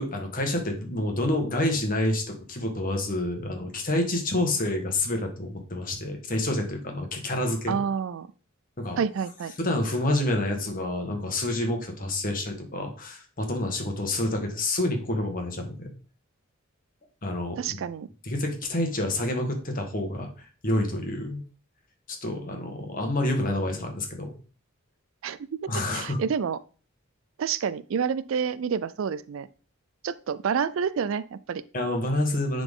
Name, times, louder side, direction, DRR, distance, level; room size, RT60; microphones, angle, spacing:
voice 1, 0.0-7.8 8.8-9.0 9.6-15.9 17.2-17.8 18.2-21.4 22.1-24.3 25.7-26.2 31.7-32.6, left 1 dB, 40° left, 3 dB, 1.5 m, -28 dB
voice 2, 7.7-8.3 9.0-9.5 17.6-18.1 25.2-26.6 27.4-29.5 30.0-31.6, right 7 dB, 70° right, 15 dB, 0.4 m, -29 dB
10.0 x 3.9 x 3.6 m, 0.38 s
head